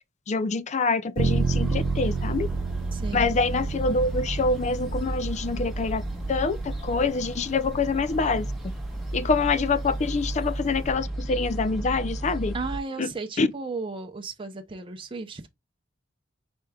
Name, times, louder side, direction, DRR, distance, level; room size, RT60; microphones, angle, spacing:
voice 1, 0.3-2.5 3.1-6.0 6.3-8.5 9.1-12.5 13.0-13.1 13.4-13.5, left 4 dB, 35° left, 0.4 m, -25 dB
sound 1, 1.2-12.8, right 1 dB, ahead, 1.3 m, -34 dB
sound 2, 1.2-10.9, right 4 dB, 70° right, 0.5 m, -31 dB
voice 2, 2.9-3.3 12.5-15.5, right 3 dB, 25° right, 0.6 m, -34 dB
5.0 x 4.3 x 2.2 m
head